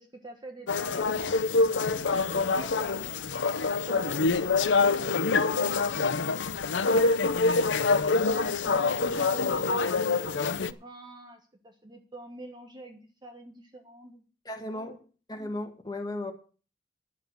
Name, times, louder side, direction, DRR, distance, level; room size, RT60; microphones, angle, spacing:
voice 1, 0.0-1.3 2.0-6.2 8.1-14.2 14.7-15.0, right 1 dB, 25° right, 4 dB, 1.3 m, -46 dB
sound 1, 0.7-10.7, left 4 dB, 85° left, 0.7 m, -26 dB
voice 2, 2.3-2.7 6.8-7.3 14.4-15.0 15.3-16.3, left 1 dB, 20° left, 5 dB, 1.6 m, -37 dB
10.5 x 7.3 x 7.9 m, 0.37 s
head